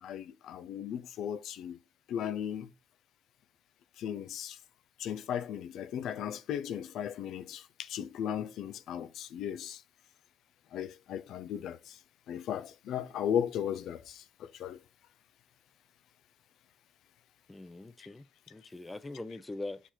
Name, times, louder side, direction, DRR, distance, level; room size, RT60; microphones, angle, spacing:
voice 1, 0.0-1.8 2.1-2.7 4.0-4.6 5.0-9.8 10.7-12.0 12.3-14.8, left 9 dB, 80° left, 0.6 m, -36 dB
voice 2, 17.5-19.8, left 2 dB, 15° left, 0.6 m, -42 dB
6.8 x 4.4 x 4.3 m
cardioid pair, 90°, 0 cm